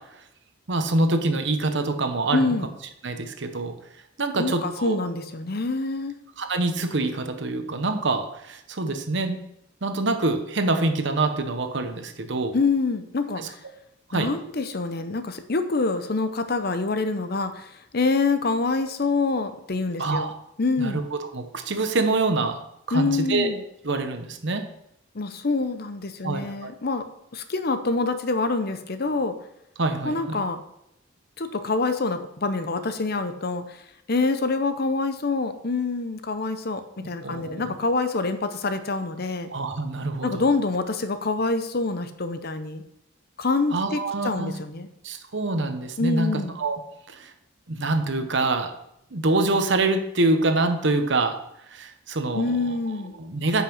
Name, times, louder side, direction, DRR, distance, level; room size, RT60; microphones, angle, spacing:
voice 1, 0.7-2.5 3.0-3.7 4.2-5.0 6.4-9.4 9.8-12.5 13.4-13.5 14.1-14.3 20.0-20.3 20.8-22.6 22.9-23.5 23.8-24.6 26.2-26.7 29.8-30.4 37.2-37.7 39.5-40.5 43.7-44.6 45.0-46.8 47.1-47.3 47.7-48.7 49.1-51.4 51.7-52.8 53.2-53.6, right 2 dB, 60° right, 7 dB, 1.0 m, -25 dB
voice 2, 2.3-2.7 4.4-6.1 12.5-13.6 14.1-20.3 20.6-21.0 22.9-23.6 25.1-27.1 27.3-29.4 30.0-30.6 31.4-33.8 34.1-39.5 40.2-42.8 43.4-44.9 46.0-46.5 52.3-53.1, left 3 dB, 50° left, 10 dB, 0.7 m, -26 dB
9.3 x 5.7 x 5.5 m, 0.81 s
head